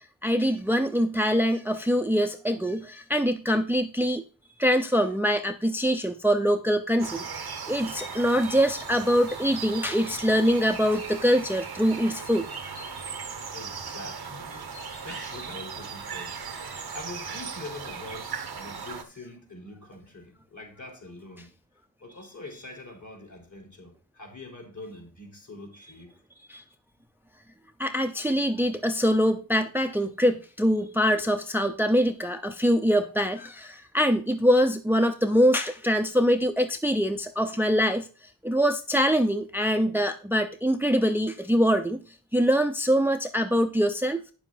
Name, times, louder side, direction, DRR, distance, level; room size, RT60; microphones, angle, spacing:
voice 1, 0.0-4.2 4.6-12.5 16.7-16.8 26.5-26.6 27.8-38.1 38.4-42.0 42.3-44.2, equal, 5° right, 0.7 m, -24 dB
sound 1, 7.0-19.0, right 5 dB, 85° right, 1.2 m, -37 dB
voice 2, 13.5-14.7 15.0-21.5 22.0-26.1, left 2 dB, 50° left, 4.1 m, -44 dB
8.8 x 7.3 x 3.9 m
wide cardioid pair, 55°, 37 cm